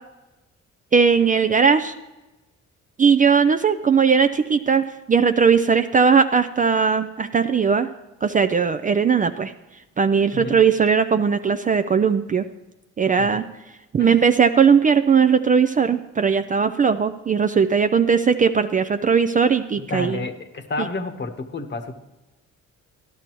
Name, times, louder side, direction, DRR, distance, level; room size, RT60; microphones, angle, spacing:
voice 1, 0.9-1.9 3.0-7.9 8.2-9.5 10.0-12.5 13.0-13.5 13.9-20.2, right 6 dB, 30° right, 8 dB, 0.4 m, -18 dB
voice 2, 10.3-10.6 13.2-13.3 14.0-14.3 19.8-21.9, left 3 dB, 35° left, 8 dB, 1.0 m, -30 dB
12.5 x 11.5 x 3.0 m, 1.0 s
cardioid pair, 90°, 30 cm